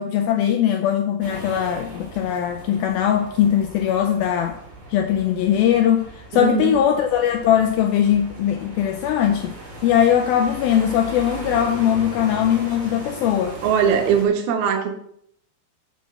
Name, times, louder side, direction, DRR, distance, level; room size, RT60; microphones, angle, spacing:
voice 1, 0.0-4.6 4.9-9.5 9.8-13.6, left 10 dB, 90° left, 6 dB, 2.1 m, -20 dB
sound 1, 1.2-14.2, right 1 dB, 40° right, 4.0 m, -38 dB
voice 2, 6.3-6.7 13.6-14.9, right 7 dB, 75° right, 4 dB, 2.8 m, -20 dB
6.9 x 6.2 x 6.6 m, 0.69 s
omnidirectional pair, 4.8 m